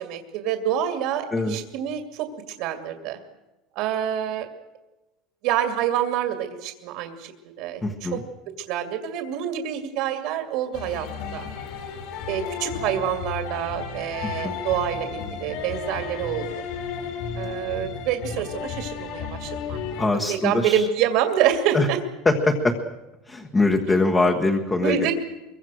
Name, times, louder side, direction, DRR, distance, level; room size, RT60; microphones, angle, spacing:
voice 1, 0.0-2.3 2.6-3.2 3.8-4.5 5.4-7.3 7.6-8.2 8.7-11.5 12.3-16.6 17.4-19.8 20.3-22.0 24.8-25.1, right 9 dB, 55° right, 6 dB, 2.4 m, -27 dB
voice 2, 7.8-8.2 14.2-14.5 20.0-20.8 21.7-21.9 22.2-22.7 23.3-25.1, left 2 dB, 10° left, 3 dB, 1.3 m, -22 dB
sound 1, 10.7-20.1, left 6 dB, 60° left, 3.8 m, -33 dB
24.5 x 23.0 x 6.4 m, 1.1 s
cardioid pair, 175°, 0 cm